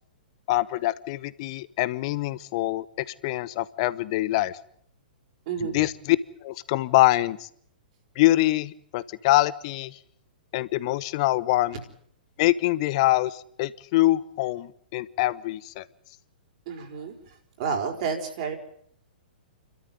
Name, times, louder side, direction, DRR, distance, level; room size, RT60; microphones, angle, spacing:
voice 1, 0.5-2.9 3.2-4.6 5.7-6.2 6.4-7.5 8.2-9.9 10.5-11.8 12.4-15.8, left 17 dB, 45° left, 18 dB, 1.0 m, -24 dB
voice 2, 5.5-5.9 16.7-18.5, right 6 dB, 45° right, 3 dB, 4.8 m, -31 dB
29.5 x 13.0 x 9.2 m, 0.67 s
figure-of-eight pair, 115°, 5 cm